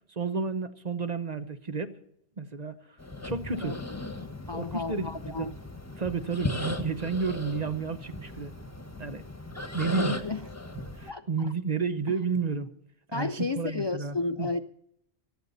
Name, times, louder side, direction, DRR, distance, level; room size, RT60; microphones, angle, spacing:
voice 1, 0.1-2.0 2.4-2.8 3.2-3.8 4.5-5.5 6.0-8.5 9.0-9.2 9.7-10.3 11.0-12.7 13.1-14.5, right 5 dB, 40° right, 9 dB, 0.9 m, -31 dB
sound 1, 3.0-11.1, left 2 dB, 15° left, 1.3 m, -37 dB
voice 2, 4.5-5.5 9.9-10.4 11.1-11.3 13.1-14.6, left 3 dB, 40° left, 10 dB, 0.4 m, -32 dB
19.0 x 13.5 x 4.1 m, 0.72 s
omnidirectional pair, 1.1 m